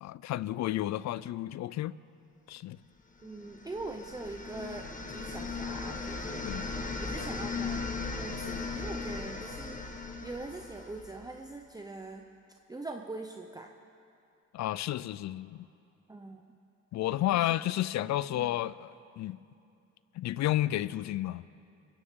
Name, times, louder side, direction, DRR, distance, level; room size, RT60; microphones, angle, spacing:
voice 1, 0.0-1.9 2.5-2.8 6.5-6.7 14.5-15.7 16.9-19.4 20.1-21.4, left 14 dB, 65° left, 0.5 m, -31 dB
voice 2, 3.2-12.2 12.7-13.7 16.1-16.4 17.3-17.5 18.3-18.6, right 2 dB, 10° right, 0.8 m, -43 dB
sound 1, 3.4-11.4, left 4 dB, 25° left, 1.5 m, -37 dB
23.0 x 16.0 x 3.7 m
cardioid pair, 90°, 30 cm